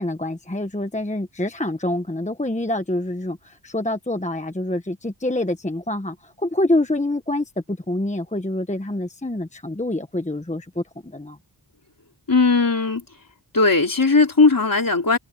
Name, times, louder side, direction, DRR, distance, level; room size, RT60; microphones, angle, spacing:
voice 1, 0.0-11.4, left 1 dB, 15° left, 1.3 m, -26 dB
voice 2, 12.3-13.0 13.5-15.2, left 3 dB, 45° left, 3.7 m, -17 dB
wide cardioid pair, 85°, 48 cm